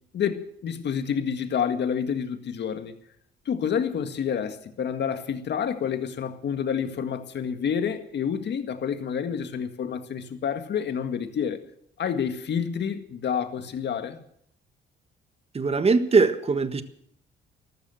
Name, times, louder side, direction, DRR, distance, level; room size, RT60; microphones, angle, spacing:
voice 1, 0.1-2.9 3.5-11.6 12.0-14.2, left 7 dB, 60° left, 1.9 m, -28 dB
voice 2, 15.5-16.8, right 4 dB, 30° right, 1.5 m, -21 dB
14.0 x 13.0 x 7.8 m
cardioid pair, 90°, 20 cm